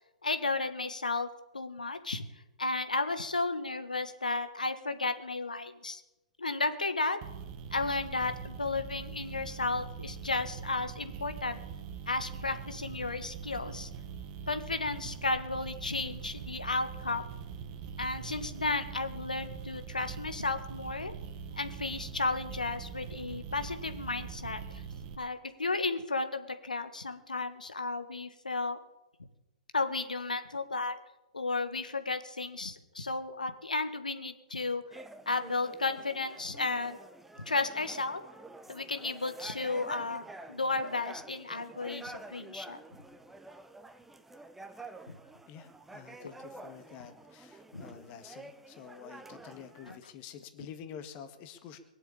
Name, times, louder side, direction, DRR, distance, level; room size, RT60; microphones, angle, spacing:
voice 1, 0.2-1.3 1.5-2.2 2.6-6.0 6.4-7.2 7.7-11.6 12.1-13.9 14.5-17.2 18.0-21.1 21.6-24.8 25.2-28.8 29.7-31.0 31.3-34.8 35.2-37.0 37.5-38.2 38.7-40.2 40.5-42.8 45.1-45.2 46.2-46.3 47.7-47.8, left 3 dB, 85° left, 9 dB, 1.6 m, -33 dB
sound 1, 7.2-25.1, right 6 dB, 40° right, 1.6 m, -43 dB
sound 2, 34.9-50.0, right 2 dB, 5° right, 0.9 m, -49 dB
voice 2, 45.5-51.8, left 8 dB, 35° left, 8 dB, 1.8 m, -48 dB
21.5 x 7.7 x 8.6 m, 1.0 s
figure-of-eight pair, 120°, 4 cm